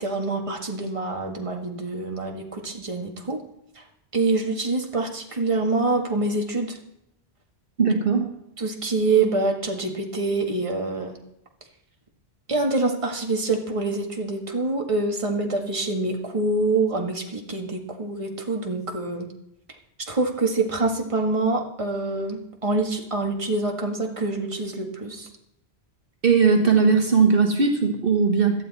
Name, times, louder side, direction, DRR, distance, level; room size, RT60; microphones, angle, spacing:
voice 1, 0.0-3.4 4.1-6.8 8.6-11.2 12.5-19.3 20.1-25.3, right 3 dB, 30° right, 2 dB, 1.8 m, -25 dB
voice 2, 7.8-8.3 26.2-28.6, right 5 dB, 60° right, 3 dB, 1.7 m, -19 dB
17.5 x 12.5 x 4.2 m, 0.79 s
omnidirectional pair, 1.1 m